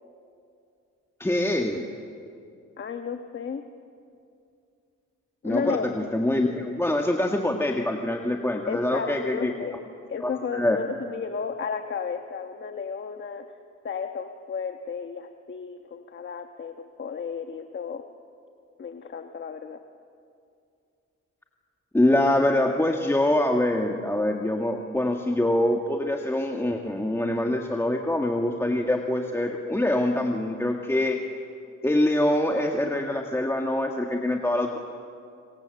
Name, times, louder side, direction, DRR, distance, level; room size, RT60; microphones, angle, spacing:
voice 1, 1.2-1.9 5.4-9.5 10.2-10.8 21.9-31.2 31.8-34.8, left 1 dB, 10° left, 2 dB, 1.8 m, -24 dB
voice 2, 2.8-3.6 5.4-5.9 8.7-9.8 10.1-13.4 13.8-18.0 18.8-19.8, left 6 dB, 40° left, 6 dB, 1.4 m, -33 dB
27.0 x 24.5 x 7.9 m, 2.5 s
cardioid pair, 90°, 30 cm